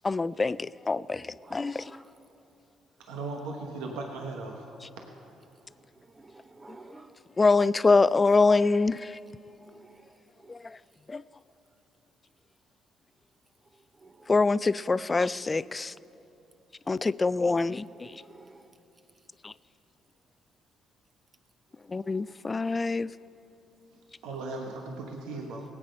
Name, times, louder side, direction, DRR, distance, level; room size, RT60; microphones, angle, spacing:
voice 1, 0.0-2.0 7.4-9.2 10.5-10.8 11.1-11.2 14.3-15.9 16.9-18.1 19.4-19.5 21.9-23.1, left 3 dB, 30° left, 18 dB, 0.3 m, -25 dB
voice 2, 1.4-2.1 6.1-7.1 9.8-10.0 10.4-10.5 14.0-14.1 18.0-18.6 22.2-22.8, right 3 dB, 30° right, 9 dB, 0.8 m, -51 dB
voice 3, 3.1-4.6 24.2-25.6, right 3 dB, 85° right, 2 dB, 1.1 m, -37 dB
18.0 x 8.7 x 5.3 m, 2.9 s
supercardioid pair, 60°, 0 cm